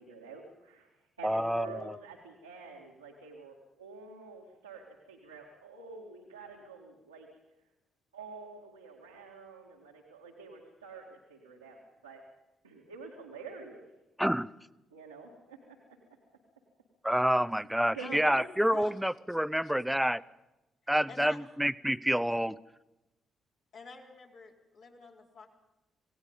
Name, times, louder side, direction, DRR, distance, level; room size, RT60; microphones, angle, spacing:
voice 1, 0.0-7.3 8.1-12.2 12.6-13.9 14.9-15.8 17.9-18.5, right 4 dB, 85° right, -3 dB, 2.2 m, -47 dB
voice 2, 1.2-1.8 14.2-14.5 17.0-20.2 20.9-22.6, equal, 5° right, 17 dB, 0.7 m, -28 dB
voice 3, 18.7-19.2 19.6-19.7 20.8-21.4 23.7-25.5, left 4 dB, 60° left, -2 dB, 4.2 m, -49 dB
27.5 x 18.0 x 5.5 m, 0.98 s
figure-of-eight pair, 40°, 0 cm